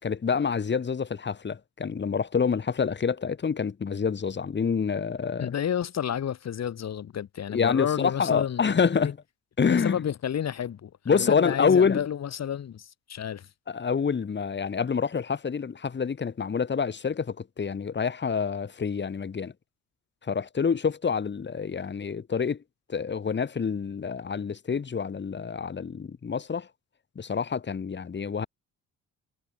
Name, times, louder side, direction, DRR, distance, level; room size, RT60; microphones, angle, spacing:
voice 1, 0.0-5.5 7.5-9.2 9.6-10.0 11.1-12.0 13.7-19.5 20.2-22.6 22.9-26.7 27.2-28.5, left 6 dB, 35° left, 2.8 m, -27 dB
voice 2, 5.4-9.1 9.6-13.5, left 9 dB, 60° left, 5.5 m, -31 dB
cardioid pair, 90°, 30 cm